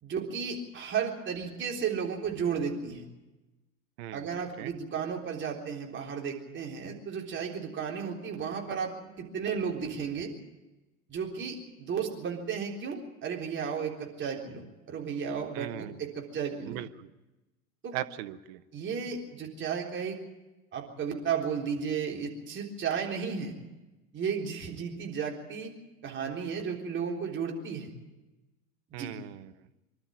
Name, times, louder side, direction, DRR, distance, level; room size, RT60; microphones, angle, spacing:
voice 1, 0.0-3.0 4.1-8.9 9.2-10.3 11.1-16.8 17.8-17.9 18.7-20.2 20.7-23.5 24.1-25.7 26.0-27.9 28.9-29.1, right 6 dB, 30° right, 0 dB, 3.8 m, -34 dB
voice 2, 4.0-4.3 4.6-4.7 15.5-16.0 16.7-17.1 17.9-18.6 28.9-29.5, right 14 dB, 50° right, 11 dB, 1.0 m, -38 dB
25.0 x 12.0 x 9.0 m, 1.1 s
figure-of-eight pair, 80°, 41 cm